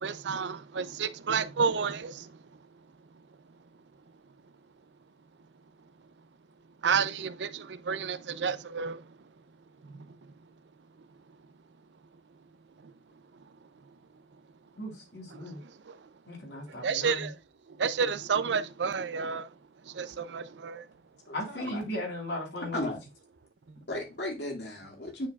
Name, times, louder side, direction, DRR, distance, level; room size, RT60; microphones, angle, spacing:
voice 1, 0.0-2.3 6.8-9.0 9.9-10.1 16.8-17.3 17.8-19.5 19.9-20.8, right 6 dB, 80° right, 0.5 m, -30 dB
voice 2, 14.8-15.6 16.3-17.3 21.3-22.9, left 1 dB, 90° left, 3.8 m, -37 dB
voice 3, 21.3-21.8 22.7-23.0 23.9-25.3, left 1 dB, 70° left, 2.1 m, -35 dB
9.0 x 4.6 x 2.3 m
head